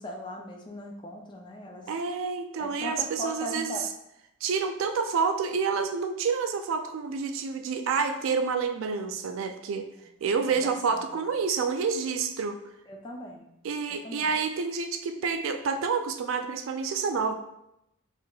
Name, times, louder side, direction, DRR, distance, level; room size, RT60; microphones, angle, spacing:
voice 1, 0.0-1.9 2.6-3.9 10.3-11.3 12.9-13.5 13.9-14.3, left 1 dB, 20° left, 1 dB, 0.3 m, -39 dB
voice 2, 1.9-3.8 4.4-9.9 10.2-12.6 13.6-17.3, right 5 dB, 70° right, 7 dB, 0.3 m, -28 dB
4.5 x 2.4 x 2.3 m, 0.82 s
head